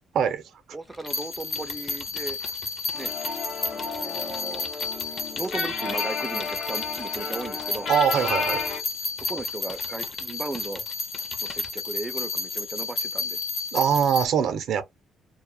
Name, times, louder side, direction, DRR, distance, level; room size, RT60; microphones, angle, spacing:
voice 1, 0.7-2.4 2.9-3.1 3.7-4.7 5.4-7.9 9.3-10.8 11.4-13.4, right 2 dB, 20° right, 0.3 m, -36 dB
sound 1, 0.9-6.0 6.4-8.8 9.2-11.7, left 4 dB, 45° left, 0.5 m, -43 dB
sound 2, 1.1-14.3, left 3 dB, 60° left, 1.0 m, -32 dB
sound 3, 2.9-8.8, left 4 dB, 90° left, 0.7 m, -32 dB
voice 2, 7.9-8.6 13.7-14.8, right 8 dB, 75° right, 0.5 m, -22 dB
2.2 x 2.0 x 2.9 m
cardioid pair, 90°, 0 cm